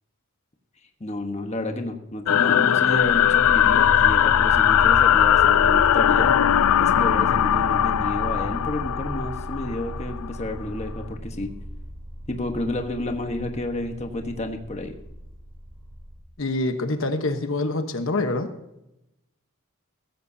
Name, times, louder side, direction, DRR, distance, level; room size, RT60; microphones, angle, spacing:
voice 1, 1.0-6.3 6.8-11.5 12.3-14.9, left 1 dB, 30° left, 4 dB, 1.2 m, -30 dB
sound 1, 2.3-10.3, left 10 dB, 85° left, 0.4 m, -19 dB
sound 2, 2.8-16.2, equal, 5° left, 4.8 m, -34 dB
voice 2, 16.4-18.5, left 2 dB, 65° left, 7 dB, 1.1 m, -25 dB
16.0 x 14.5 x 2.8 m, 0.86 s
head